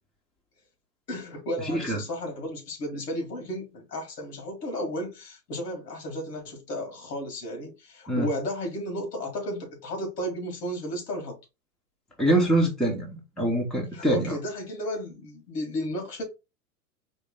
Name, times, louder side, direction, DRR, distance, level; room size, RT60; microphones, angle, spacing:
voice 1, 1.1-11.4 13.9-16.2, equal, 90° left, 2.6 m, -33 dB
voice 2, 1.6-2.0 8.1-8.3 12.2-14.4, right 1 dB, ahead, 0.9 m, -24 dB
4.3 x 2.9 x 3.7 m
hypercardioid pair, 130°, 47 cm